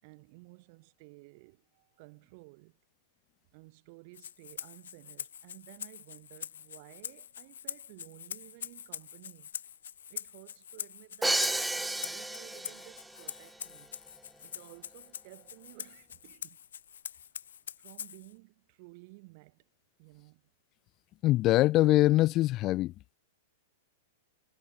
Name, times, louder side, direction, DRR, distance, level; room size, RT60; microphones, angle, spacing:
voice 1, 0.0-2.8 3.5-9.5 10.1-11.5 11.8-13.9 14.4-16.7 17.8-19.7 20.0-20.4, right 27 dB, 50° right, 4.4 m, -54 dB
Rattle (instrument), 4.1-18.3, left 9 dB, 75° left, 2.3 m, -44 dB
Crash cymbal, 11.2-13.1, right 2 dB, 5° right, 0.6 m, -31 dB
voice 2, 21.2-22.9, left 16 dB, 35° left, 0.6 m, -23 dB
hypercardioid pair, 110°, 0 cm